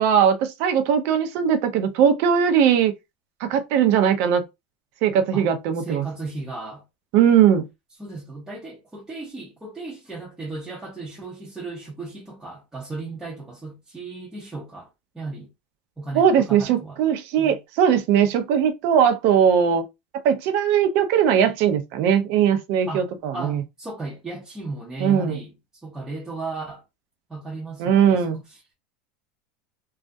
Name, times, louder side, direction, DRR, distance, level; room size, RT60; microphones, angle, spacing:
voice 1, 0.0-2.9 3.5-4.4 5.0-6.1 7.1-7.6 16.1-19.8 20.2-23.6 25.0-25.4 27.8-28.4, right 8 dB, 55° right, 0.5 m, -19 dB
voice 2, 5.7-6.8 8.0-14.9 15.1-15.5 16.0-17.0 17.4-17.6 22.9-25.5 25.8-26.8 27.3-28.7, right 3 dB, 10° right, 0.6 m, -35 dB
2.3 x 2.0 x 2.5 m
supercardioid pair, 135°, 5 cm